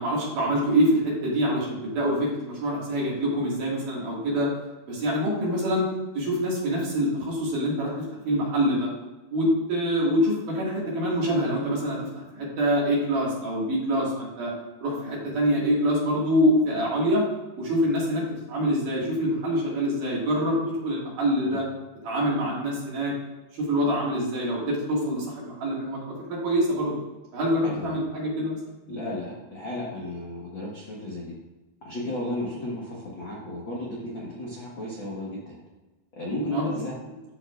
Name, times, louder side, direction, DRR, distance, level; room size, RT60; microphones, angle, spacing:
voice 1, 0.0-4.5 4.9-5.9 6.1-8.9 9.3-14.5 14.8-17.2 17.6-20.6 20.8-21.6 22.0-23.1 23.6-26.9 27.3-28.6 36.5-36.8, equal, 60° right, -5 dB, 3.3 m, -25 dB
voice 2, 27.6-27.9 28.9-31.3 31.8-35.6 36.2-36.9, left 1 dB, 80° left, -5 dB, 1.0 m, -34 dB
13.0 x 6.0 x 2.5 m, 1.1 s
omnidirectional pair, 4.6 m